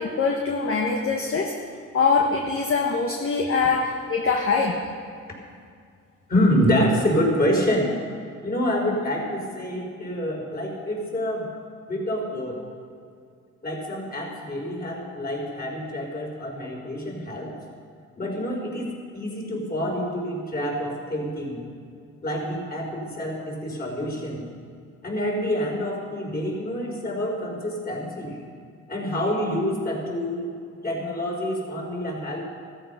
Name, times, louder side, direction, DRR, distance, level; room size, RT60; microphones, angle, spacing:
voice 1, 0.0-1.6 1.9-4.9, left 4 dB, 45° left, 1 dB, 1.4 m, -23 dB
voice 2, 6.3-7.9 8.4-11.5 11.9-12.6 13.6-17.5 18.2-21.7 22.2-24.5 25.0-28.4 28.9-30.5 30.8-32.4, equal, 30° left, -2 dB, 4.8 m, -27 dB
14.0 x 14.0 x 5.7 m, 2.3 s
cardioid pair, 90°, 30 cm